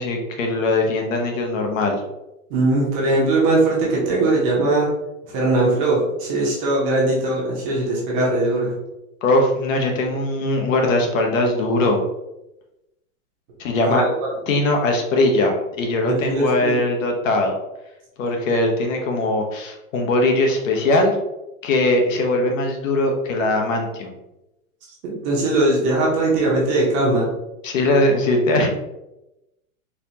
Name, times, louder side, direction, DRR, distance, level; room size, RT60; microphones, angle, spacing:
voice 1, 0.0-2.0 9.2-12.0 13.6-14.0 14.5-17.5 18.2-21.2 21.6-24.1 27.6-28.7, left 2 dB, 60° left, 3 dB, 0.9 m, -20 dB
voice 2, 2.5-4.9 5.3-8.7 13.9-14.1 16.0-16.8 25.1-27.3, right 2 dB, 25° right, -4 dB, 0.8 m, -20 dB
4.2 x 2.7 x 2.8 m, 0.93 s
supercardioid pair, 160°, 44 cm